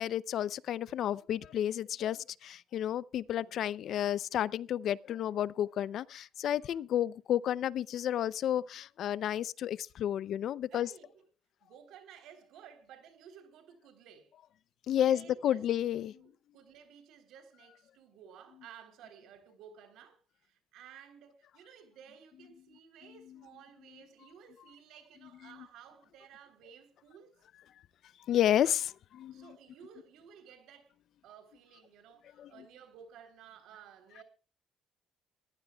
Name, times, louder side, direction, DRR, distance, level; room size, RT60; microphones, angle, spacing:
voice 1, 0.0-10.9 14.9-16.2 28.3-29.5 32.4-32.5, left 11 dB, 65° left, 0.5 m, -31 dB
voice 2, 10.7-11.2 11.6-14.3 14.9-15.6 16.1-27.4 29.2-30.9 31.2-34.2, right 8 dB, 75° right, 3.6 m, -55 dB
22.0 x 15.0 x 2.3 m
cardioid pair, 105°, 0 cm